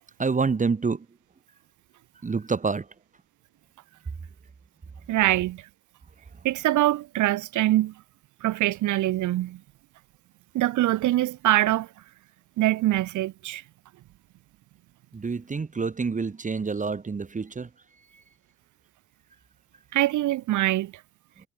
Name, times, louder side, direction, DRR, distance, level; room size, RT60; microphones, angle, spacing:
voice 1, 0.2-1.0 2.2-2.8 15.1-17.7, right 4 dB, 25° right, 1.2 m, -27 dB
voice 2, 5.1-5.6 6.4-7.9 8.4-9.6 10.5-11.9 12.6-13.6 19.9-20.9, right 15 dB, 75° right, 1.0 m, -23 dB
cardioid pair, 90°, 30 cm